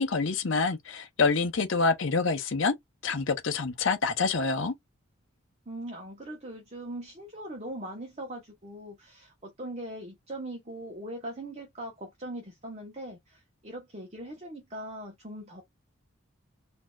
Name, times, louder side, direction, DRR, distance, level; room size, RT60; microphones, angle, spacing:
voice 1, 0.0-2.7 3.0-4.7, left 4 dB, 60° left, 0.7 m, -26 dB
voice 2, 5.7-15.6, right 1 dB, 30° right, 1.0 m, -40 dB
4.2 x 2.7 x 2.3 m
head